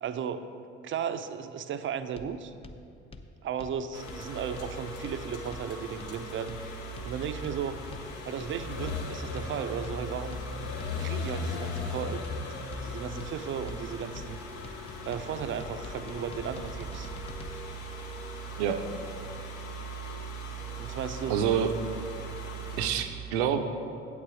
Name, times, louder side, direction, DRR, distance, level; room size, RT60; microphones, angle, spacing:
voice 1, 0.0-0.5 0.8-2.5 3.4-6.6 7.0-7.8 8.2-10.4 11.0-14.4 15.0-17.1 20.7-21.4, right 7 dB, 35° right, 10 dB, 0.6 m, -35 dB
sound 1, 2.1-17.5, left 2 dB, 15° left, 0.6 m, -47 dB
sound 2, 3.9-22.9, left 1 dB, 65° left, 1.1 m, -38 dB
voice 2, 18.6-18.9 21.3-21.7 22.8-23.6, right 8 dB, 70° right, 7 dB, 0.7 m, -27 dB
8.5 x 7.9 x 4.9 m, 2.5 s
figure-of-eight pair, 55°, 35 cm